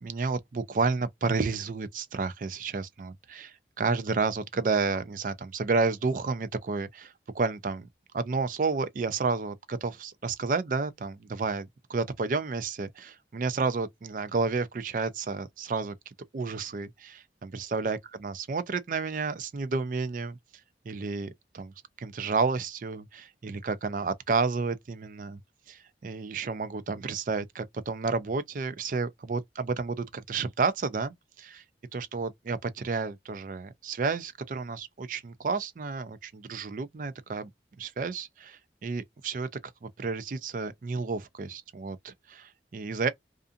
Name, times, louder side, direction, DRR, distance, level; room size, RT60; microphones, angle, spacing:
voice 1, 0.0-7.9 8.1-20.4 20.9-21.7 22.0-25.4 25.7-31.6 31.9-37.5 37.8-39.5 39.8-43.1, right 4 dB, 45° right, 0.4 m, -31 dB
2.5 x 2.4 x 2.4 m
head